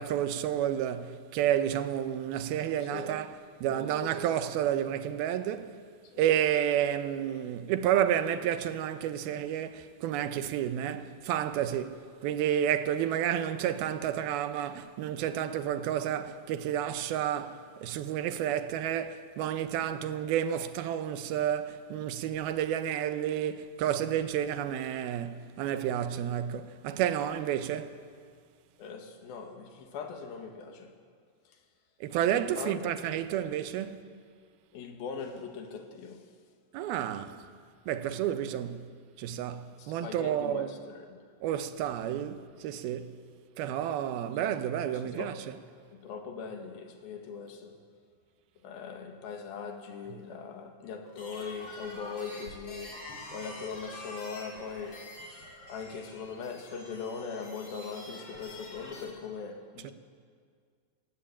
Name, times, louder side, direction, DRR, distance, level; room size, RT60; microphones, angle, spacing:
voice 1, 0.0-5.8 6.2-28.0 32.0-34.0 36.7-37.5 37.9-38.9 39.2-40.7 41.4-43.2 43.6-45.3 59.8-59.9, right 10 dB, 90° right, 2.8 m, -30 dB
voice 2, 3.7-4.3 6.1-6.3 28.8-30.9 31.5-31.6 32.3-33.2 34.7-36.3 39.8-41.2 44.1-44.4 44.8-45.4 45.9-47.8 48.6-53.0 53.3-55.0 55.7-59.9, left 5 dB, 80° left, 3.5 m, -41 dB
sound 1, 51.0-59.1, left 1 dB, 40° left, 5.3 m, -46 dB
22.0 x 17.0 x 8.7 m
omnidirectional pair, 4.2 m